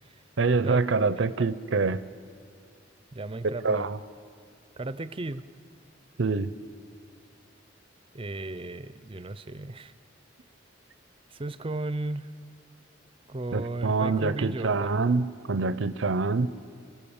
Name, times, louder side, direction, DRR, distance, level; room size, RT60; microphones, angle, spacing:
voice 1, 0.4-2.0 3.6-4.0 6.2-6.5 13.5-16.5, right 4 dB, 75° right, 14 dB, 0.6 m, -25 dB
voice 2, 3.1-3.9 4.8-5.4 8.1-9.9 11.3-12.3 13.3-15.0, right 2 dB, 30° right, 13 dB, 0.6 m, -35 dB
28.5 x 16.0 x 7.2 m, 2.3 s
head